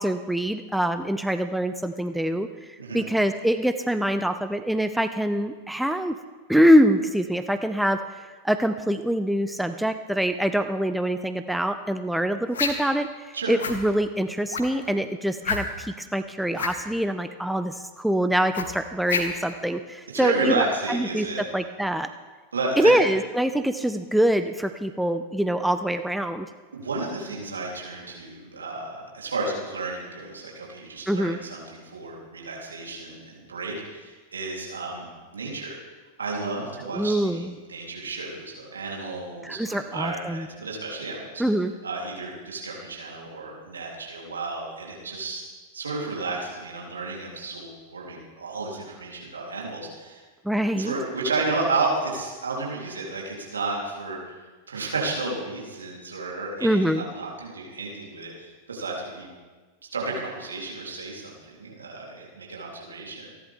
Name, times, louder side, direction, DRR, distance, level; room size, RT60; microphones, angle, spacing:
voice 1, 0.0-2.5 2.9-6.2 6.5-22.1 22.8-26.5 31.1-31.4 36.9-37.5 39.4-40.5 41.4-41.7 50.4-50.9 56.6-57.0, equal, ahead, 9 dB, 0.5 m, -24 dB
sound 1, 12.5-12.9 13.6-13.8 14.5-14.8 15.4-15.9 16.5-16.8 18.5-19.5, left 5 dB, 65° left, 1.5 m, -28 dB
voice 2, 20.1-21.5 22.5-23.0 26.7-35.8 36.2-41.4 41.8-45.4 45.7-50.2 50.5-54.3 54.7-59.3 59.9-63.3, right 3 dB, 70° right, -3 dB, 3.5 m, -32 dB
27.5 x 11.0 x 3.6 m, 1.4 s
figure-of-eight pair, 90°, 0 cm